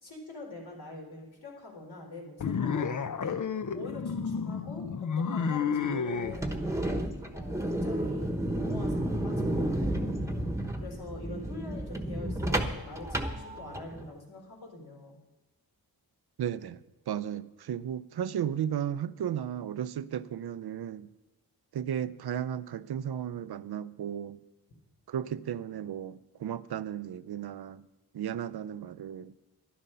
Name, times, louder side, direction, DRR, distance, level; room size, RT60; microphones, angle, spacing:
voice 1, 0.0-3.4 3.7-4.9 5.2-6.9 7.3-15.1, left 2 dB, 75° left, 3.9 m, -45 dB
sound 1, 2.4-6.4, left 6 dB, 50° left, 0.7 m, -31 dB
sound 2, 6.2-14.1, right 1 dB, 10° right, 1.2 m, -32 dB
voice 2, 16.4-21.1 21.7-24.4 25.1-27.8 28.1-29.3, right 9 dB, 75° right, 0.5 m, -34 dB
11.5 x 11.0 x 5.6 m
wide cardioid pair, 75°, 38 cm